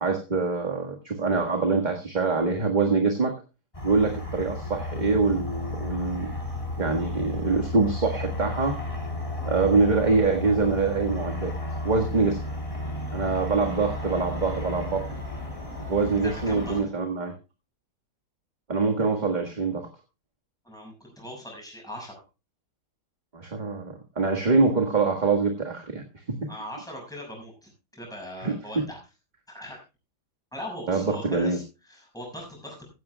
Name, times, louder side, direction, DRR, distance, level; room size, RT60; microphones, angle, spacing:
voice 1, 0.0-3.3 3.8-6.4 6.8-8.8 9.4-11.5 11.8-12.4 13.1-15.0 15.9-17.3 18.7-19.9 23.3-26.4 28.4-28.5 30.9-31.6, right 4 dB, 30° right, 3 dB, 1.7 m, -24 dB
sound 1, 3.7-16.8, left 1 dB, 20° left, 3.7 m, -33 dB
voice 2, 16.2-16.8 20.6-22.2 26.5-29.0 29.5-29.8 30.5-32.9, equal, ahead, 0 dB, 6.3 m, -40 dB
16.5 x 14.0 x 2.3 m, 0.29 s
omnidirectional pair, 1.7 m